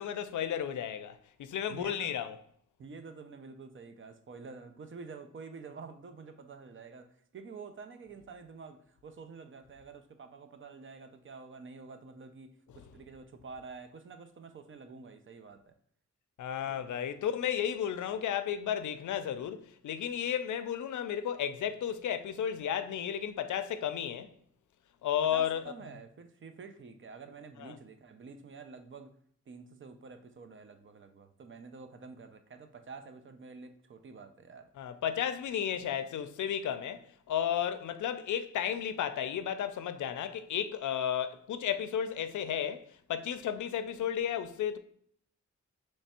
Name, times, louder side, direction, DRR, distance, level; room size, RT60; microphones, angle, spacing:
voice 1, 0.0-2.3 16.4-24.3 25.0-25.6 27.6-27.7 34.8-37.0 37.3-44.8, left 9 dB, 85° left, 0.5 m, -33 dB
voice 2, 1.7-2.1 2.8-15.7 16.7-17.1 25.3-29.2 29.5-34.7, right 4 dB, 45° right, 0.5 m, -48 dB
3.3 x 3.2 x 4.2 m
wide cardioid pair, 120°, 29 cm